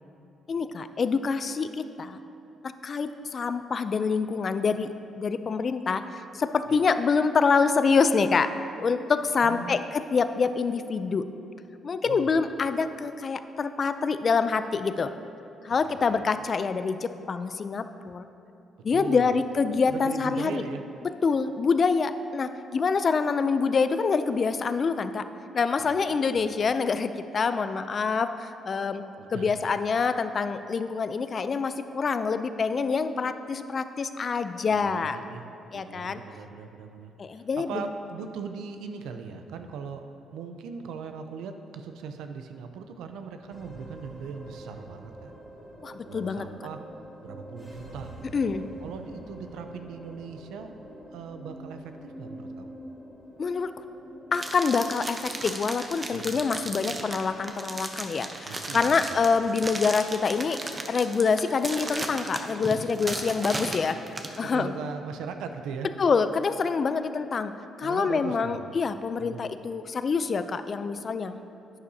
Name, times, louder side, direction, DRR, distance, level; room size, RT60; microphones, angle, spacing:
voice 1, 0.5-1.7 2.0-2.2 2.6-8.5 8.8-11.3 11.8-15.1 15.6-18.2 18.8-20.6 21.2-25.2 25.5-29.0 29.3-35.2 35.7-36.2 37.2-37.8 45.8-46.5 48.3-48.6 53.4-53.7 54.3-60.6 60.9-64.0 64.4-64.7 66.0-67.5 67.8-71.4, left 5 dB, 45° left, 11 dB, 0.4 m, -26 dB
voice 2, 9.4-9.8 12.0-12.3 15.9-16.2 18.9-19.4 19.9-20.8 25.8-26.4 29.2-29.5 34.7-35.4 35.7-45.4 46.0-46.8 47.2-50.7 51.1-52.7 56.1-56.4 58.4-59.0 63.1-63.2 64.4-65.9 67.8-68.6 69.2-69.4, right 6 dB, 90° right, 7 dB, 0.5 m, -39 dB
sound 1, 43.5-62.0, right 1 dB, 5° right, 1.6 m, -47 dB
sound 2, 54.3-64.4, right 2 dB, 30° right, 0.8 m, -35 dB
11.0 x 8.5 x 2.7 m, 2.7 s
cardioid pair, 90°, 0 cm